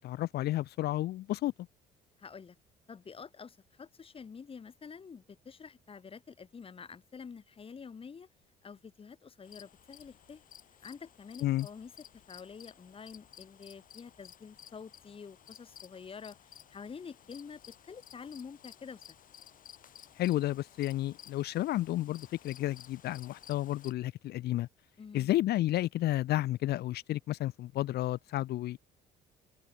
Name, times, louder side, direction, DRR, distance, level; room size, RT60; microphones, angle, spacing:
voice 1, 0.0-1.5 11.4-11.7 20.2-24.7 25.1-28.8, left 15 dB, 75° left, 2.9 m, -31 dB
voice 2, 2.2-2.6 2.9-8.3 8.6-10.4 10.8-11.9 12.3-19.2 25.0-25.3, left 6 dB, 35° left, 6.9 m, -48 dB
sound 1, 9.4-23.9, left 10 dB, 55° left, 6.0 m, -55 dB
cardioid pair, 110°, 17 cm